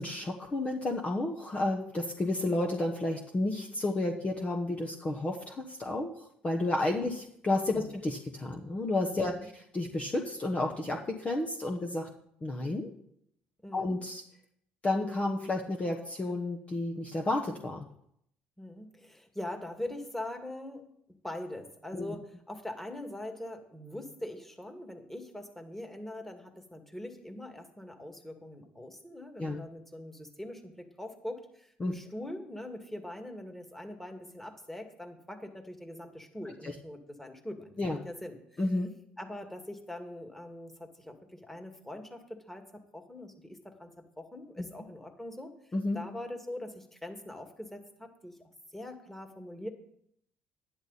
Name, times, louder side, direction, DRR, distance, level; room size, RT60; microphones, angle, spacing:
voice 1, 0.0-12.1 12.4-12.9 13.7-14.2 14.8-17.9 21.9-22.1 29.4-29.6 31.8-31.9 36.6-36.7 37.8-38.0 38.6-38.9 44.6-44.7 45.7-46.0, left 2 dB, 30° left, 1 dB, 1.3 m, -31 dB
voice 2, 18.6-20.9 21.2-38.6 39.2-49.7, left 1 dB, 5° left, 5 dB, 2.1 m, -43 dB
11.0 x 10.0 x 4.2 m, 0.73 s
hypercardioid pair, 60°, 4 cm